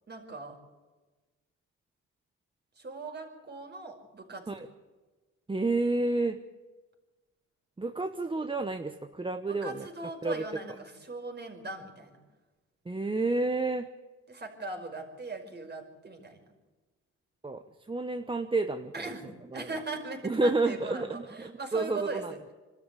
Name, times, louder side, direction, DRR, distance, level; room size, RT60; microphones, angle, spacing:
voice 1, 0.1-0.6 2.8-4.7 9.5-12.2 14.3-16.4 18.9-22.4, right 3 dB, 35° right, 3 dB, 5.4 m, -40 dB
voice 2, 5.5-6.4 7.8-9.9 10.2-10.4 12.9-13.9 17.4-19.1 19.5-19.7 20.2-22.3, right 2 dB, 15° right, 7 dB, 1.0 m, -30 dB
25.5 x 13.0 x 8.4 m, 1.2 s
cardioid pair, 90°, 30 cm